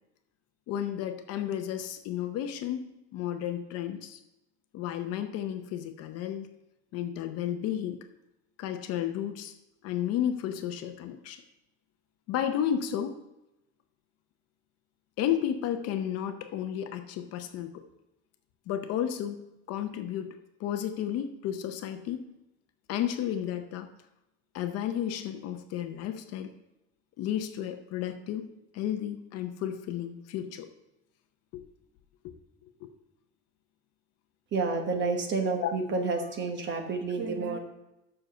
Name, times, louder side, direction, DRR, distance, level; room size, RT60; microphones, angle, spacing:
voice 1, 0.7-4.2 4.7-6.5 6.9-8.0 8.6-9.5 9.8-11.4 12.3-13.2 15.2-17.8 18.7-20.3 20.6-22.3 22.9-23.9 24.5-26.5 27.2-28.5 28.7-30.7 31.5-31.6 32.2-32.3 32.8-32.9 35.6-35.7, left 10 dB, 45° left, 8 dB, 0.7 m, -32 dB
voice 2, 34.5-37.6, right 4 dB, 30° right, 5 dB, 1.1 m, -29 dB
7.1 x 6.5 x 6.4 m, 0.93 s
cardioid pair, 165°, 36 cm